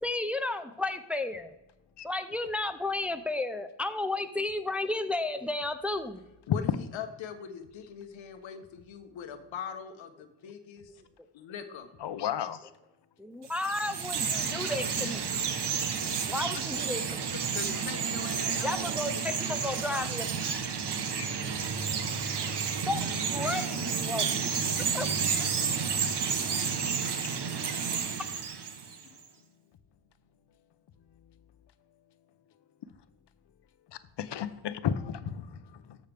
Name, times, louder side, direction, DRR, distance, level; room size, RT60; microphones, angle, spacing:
voice 1, 0.0-1.6 2.0-6.2 10.9-11.0 13.2-15.3 16.3-17.3 18.6-20.3 22.8-24.3 24.9-25.1, left 2 dB, 5° right, 7 dB, 0.5 m, -33 dB
voice 2, 6.5-11.0 11.3-11.9 17.3-20.1, left 8 dB, 90° left, 8 dB, 1.1 m, -42 dB
voice 3, 12.0-12.7 15.0-15.1 21.2-21.3 26.9-27.0 34.2-36.0, left 9 dB, 65° left, 13 dB, 0.8 m, -34 dB
Chirp tweet, 13.4-29.1, right 6 dB, 60° right, 1.1 m, -31 dB
13.0 x 6.5 x 3.4 m, 0.97 s
cardioid pair, 95°, 45 cm